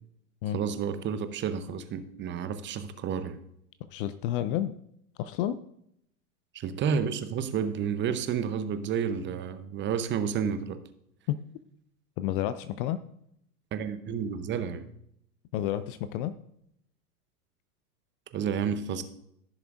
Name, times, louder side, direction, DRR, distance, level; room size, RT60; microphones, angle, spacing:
voice 1, 0.5-3.4 6.5-10.8 13.7-14.9 18.3-19.0, right 7 dB, 25° right, 0.7 m, -30 dB
voice 2, 3.9-4.7 5.2-5.6 11.3-11.4 12.2-13.0 15.5-16.3, left 12 dB, 40° left, 0.4 m, -30 dB
15.0 x 6.7 x 2.5 m
hypercardioid pair, 95°, 46 cm